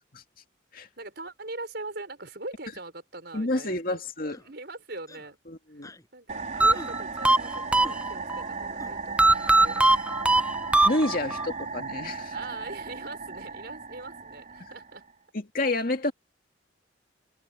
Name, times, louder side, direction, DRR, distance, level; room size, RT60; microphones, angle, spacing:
voice 1, 1.0-4.0 4.4-5.4 6.1-9.9 11.2-11.3 12.3-15.1, right 2 dB, 55° right, 6.0 m, -41 dB
voice 2, 3.3-4.4 5.5-5.9 9.6-9.8 10.8-12.3 15.3-16.1, left 2 dB, 50° left, 2.4 m, -29 dB
sound 1, 4.3-4.5 5.1-5.3 5.8-6.1 6.7-6.9 7.8-8.0 8.8-8.9, left 1 dB, 20° left, 7.2 m, -45 dB
sound 2, 6.3-15.1, right 4 dB, 40° right, 4.8 m, -36 dB
sound 3, 6.6-8.4 9.2-11.5, right 2 dB, 5° right, 0.5 m, -21 dB
head